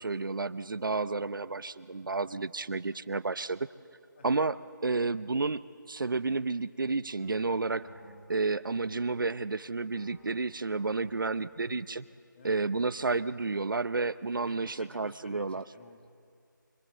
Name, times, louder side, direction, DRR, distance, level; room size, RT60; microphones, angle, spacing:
voice 1, 0.0-3.7 4.2-5.6 5.9-7.9 8.3-12.1 12.4-15.6, right 3 dB, 75° right, 15 dB, 0.7 m, -31 dB
sound 1, 7.2-9.5 9.9-12.2, equal, 55° left, 4.3 m, -57 dB
voice 2, 14.4-16.1, left 3 dB, 30° left, 4 dB, 1.7 m, -52 dB
26.0 x 24.5 x 7.7 m, 2.4 s
figure-of-eight pair, 170°, 11 cm